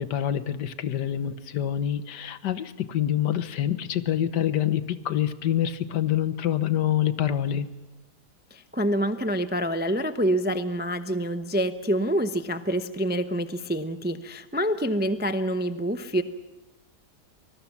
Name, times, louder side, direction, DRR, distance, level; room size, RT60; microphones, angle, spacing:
voice 1, 0.0-7.7, left 10 dB, 85° left, 13 dB, 1.6 m, -26 dB
voice 2, 8.5-16.2, equal, 15° right, 10 dB, 0.3 m, -26 dB
25.0 x 20.0 x 7.2 m, 1.0 s
omnidirectional pair, 1.8 m